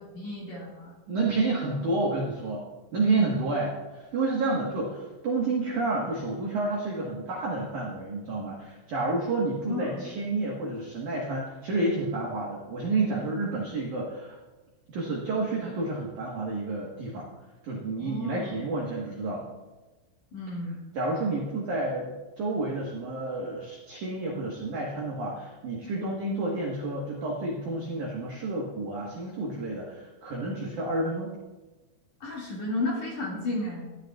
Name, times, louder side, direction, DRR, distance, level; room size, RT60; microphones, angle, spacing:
voice 1, 0.1-0.9 9.6-10.1 18.0-18.6 20.3-20.8 32.2-33.9, left 2 dB, 50° left, -5 dB, 2.6 m, -33 dB
voice 2, 1.1-2.7 2.9-14.4 14.9-17.3 17.6-19.4 20.9-31.3, right 2 dB, 85° right, -3 dB, 1.7 m, -30 dB
15.5 x 11.0 x 2.3 m, 1.2 s
omnidirectional pair, 5.8 m